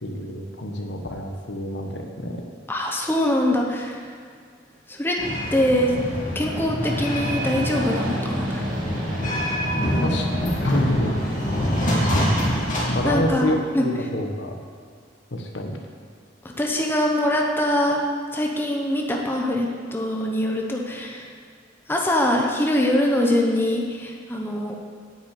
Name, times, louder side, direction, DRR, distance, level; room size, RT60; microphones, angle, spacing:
voice 1, 0.0-2.4 10.0-10.3 10.6-11.4 12.9-14.6 15.3-15.8, left 1 dB, 70° left, 3 dB, 1.2 m, -27 dB
voice 2, 2.7-4.0 4.9-5.2 5.5-5.9 6.3-8.7 13.0-13.8 16.6-18.0 18.3-21.3 21.9-24.8, left 1 dB, 10° left, -1 dB, 0.9 m, -23 dB
sound 1, 5.2-13.1, equal, 45° left, 2.9 m, -25 dB
sound 2, 6.8-12.6, equal, 45° right, 2.2 m, -32 dB
9.4 x 5.8 x 8.4 m, 2.1 s
head